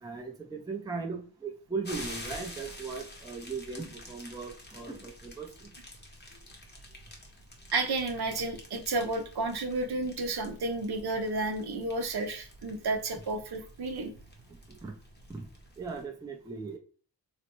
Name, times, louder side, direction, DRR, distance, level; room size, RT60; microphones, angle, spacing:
voice 1, 0.0-5.7 14.8-14.9 15.3-15.5 15.8-16.8, right 4 dB, 10° right, 1 dB, 0.4 m, -38 dB
sound 1, 1.8-16.1, left 1 dB, 25° left, 0.7 m, -48 dB
voice 2, 7.7-14.1, right 2 dB, 60° right, 5 dB, 0.7 m, -31 dB
4.0 x 2.2 x 2.9 m, 0.41 s
wide cardioid pair, 175°, 44 cm